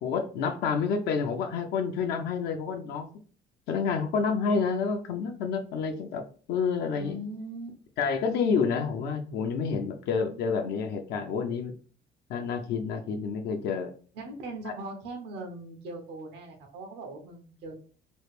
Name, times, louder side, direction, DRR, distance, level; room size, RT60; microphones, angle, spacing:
voice 1, 0.0-3.1 3.7-6.2 6.5-7.2 8.0-11.7 12.3-13.9 14.6-14.7, left 5 dB, 75° left, 4 dB, 0.6 m, -29 dB
voice 2, 6.9-7.7 8.1-8.2 14.1-17.8, right 1 dB, 85° right, 3 dB, 1.0 m, -40 dB
3.2 x 2.4 x 3.2 m, 0.40 s
cardioid pair, 110°, 17 cm